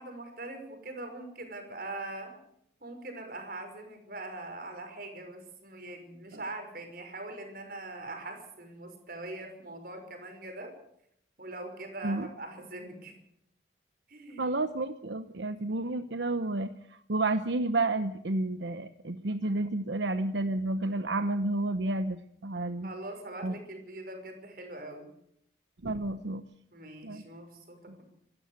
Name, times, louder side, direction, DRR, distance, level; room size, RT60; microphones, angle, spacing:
voice 1, 0.0-2.3 2.8-10.7 11.4-13.2 14.1-14.5 22.8-25.1 26.7-28.0, right 2 dB, 50° right, 5 dB, 5.7 m, -42 dB
voice 2, 14.4-22.9 23.4-23.5 25.8-26.4 27.0-27.2, right 2 dB, 80° right, 10 dB, 0.9 m, -31 dB
26.5 x 13.5 x 8.1 m, 0.74 s
head